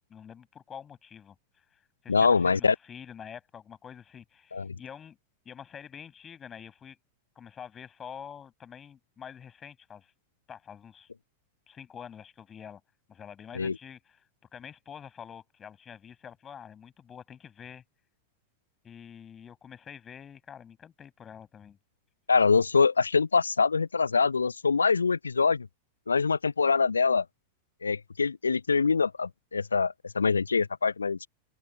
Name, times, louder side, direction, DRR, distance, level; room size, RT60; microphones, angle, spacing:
voice 1, 0.1-1.3 2.0-5.2 5.4-7.0 7.3-10.1 10.5-11.1 11.7-12.8 13.1-14.2 14.5-17.8 18.8-21.8, left 8 dB, 25° left, 6.5 m, -46 dB
voice 2, 2.1-2.7 4.5-4.8 13.5-13.7 22.3-25.7 26.1-27.2 27.8-31.3, left 5 dB, 75° left, 0.9 m, -24 dB
open air
figure-of-eight pair, 90°, 0 cm